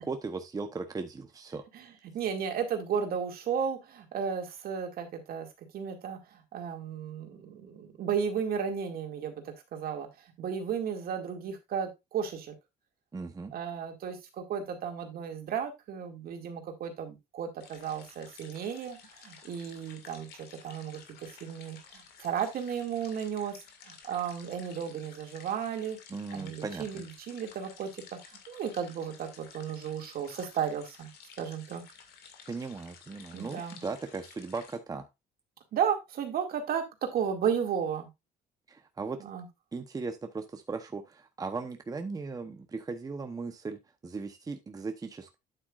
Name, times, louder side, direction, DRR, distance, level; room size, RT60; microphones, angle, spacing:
voice 1, 0.0-1.6 13.1-13.5 26.1-27.0 32.5-35.0 38.7-39.2 39.7-45.3, right 4 dB, 20° right, 6 dB, 0.9 m, -37 dB
voice 2, 2.1-10.1 10.4-12.5 13.5-23.6 23.8-26.0 26.3-31.1 31.4-31.8 33.3-33.8 35.7-36.8 37.1-38.1 39.2-39.5, right 7 dB, 60° right, 5 dB, 2.2 m, -34 dB
sound 1, 17.6-34.8, left 6 dB, 70° left, 2.2 m, -53 dB
9.0 x 7.9 x 2.4 m, 0.21 s
cardioid pair, 110°, 17 cm